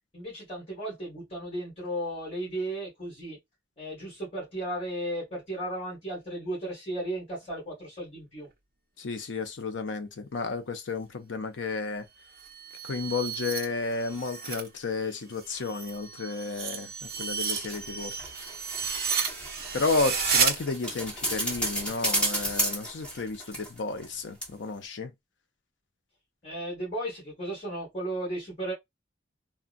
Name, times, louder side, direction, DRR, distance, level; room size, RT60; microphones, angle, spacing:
voice 1, 0.1-3.4 3.8-8.5 26.4-28.7, right 1 dB, 30° left, 1.9 m, -35 dB
voice 2, 9.0-12.1 12.8-18.1 19.7-25.1, left 4 dB, 80° left, 0.6 m, -32 dB
glass breaking reversed, 12.3-14.7 15.0-20.5, right 6 dB, 50° right, 0.7 m, -32 dB
sound 1, 17.1-24.1 24.4-24.5, right 1 dB, 5° left, 1.1 m, -33 dB
3.5 x 2.2 x 2.5 m
head